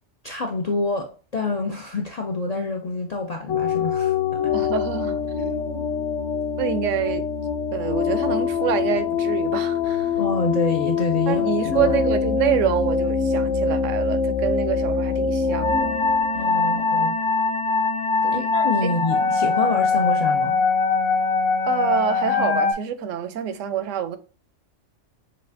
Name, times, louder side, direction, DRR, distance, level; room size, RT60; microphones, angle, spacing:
voice 1, 0.2-4.5 10.1-11.9 16.3-17.2 18.3-20.6, left 3 dB, 55° left, 0.4 m, -27 dB
sound 1, 3.5-22.7, left 5 dB, 80° left, 1.0 m, -23 dB
voice 2, 4.5-5.8 6.6-7.3 7.7-10.2 11.3-16.0 18.2-18.5 18.8-19.0 21.6-24.2, right 9 dB, 80° right, 0.9 m, -27 dB
6.6 x 2.4 x 2.5 m
omnidirectional pair, 1.3 m